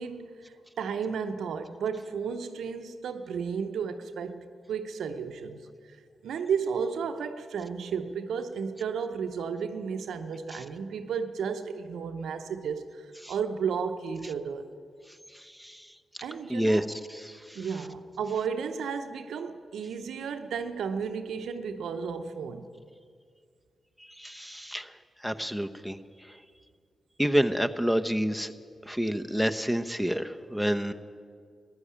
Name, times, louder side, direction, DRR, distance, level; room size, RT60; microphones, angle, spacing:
voice 1, 0.0-6.0 6.2-14.6 16.2-16.8 17.5-22.6, right 6 dB, 80° right, 8 dB, 0.8 m, -33 dB
voice 2, 15.3-15.9 16.5-17.6 24.0-24.9 25.2-26.0 26.3-26.4 27.2-28.5 28.9-30.9, equal, 5° left, 9 dB, 0.9 m, -29 dB
14.0 x 10.5 x 8.6 m, 2.1 s
supercardioid pair, 40°, 0 cm